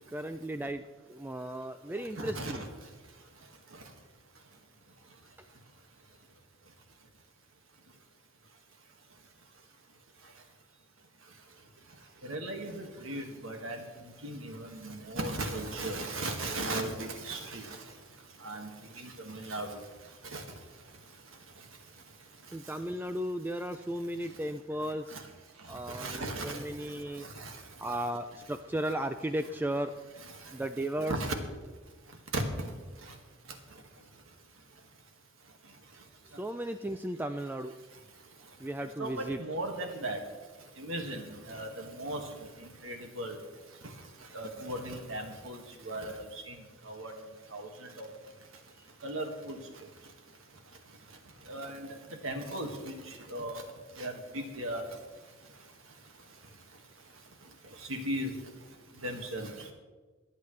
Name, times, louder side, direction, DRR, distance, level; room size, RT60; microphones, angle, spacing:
voice 1, 0.1-0.8 1.1-2.6 22.5-25.2 25.7-27.3 27.8-29.9 30.5-31.1 36.3-37.7 38.6-39.4, right 1 dB, 10° right, 8 dB, 0.3 m, -35 dB
voice 2, 2.2-2.7 12.2-13.8 14.2-17.8 18.4-18.7 19.0-19.8 20.3-20.4 25.1-25.2 25.9-26.6 27.2-27.5 31.0-31.3 32.3-32.4 39.0-40.2 40.8-42.2 42.6-43.4 44.3-46.6 46.8-47.1 47.5-48.1 49.0-49.6 51.5-51.9 52.2-52.9 53.3-53.6 54.0-54.8 57.9-58.3 59.0-59.5, right 1 dB, 65° right, 3 dB, 1.9 m, -37 dB
24.0 x 8.5 x 3.3 m, 1.3 s
head